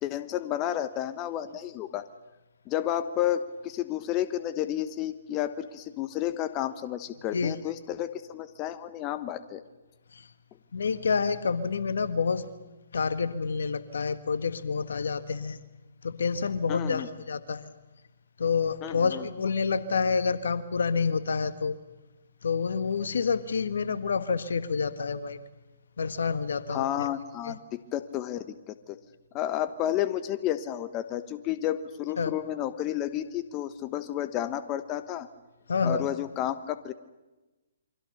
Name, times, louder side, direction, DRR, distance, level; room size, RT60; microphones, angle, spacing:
voice 1, 0.0-2.0 2.7-9.6 16.7-17.1 18.8-19.2 26.7-29.0 29.3-35.3 35.8-36.9, left 12 dB, 30° left, 12 dB, 1.2 m, -31 dB
voice 2, 10.7-12.4 12.9-15.6 16.0-17.7 18.4-21.8 22.4-25.4 26.0-27.1 27.4-27.5 32.2-32.3 35.7-36.1, left 5 dB, 70° left, 13 dB, 1.6 m, -28 dB
28.5 x 24.0 x 6.8 m, 1.1 s
figure-of-eight pair, 130°, 0 cm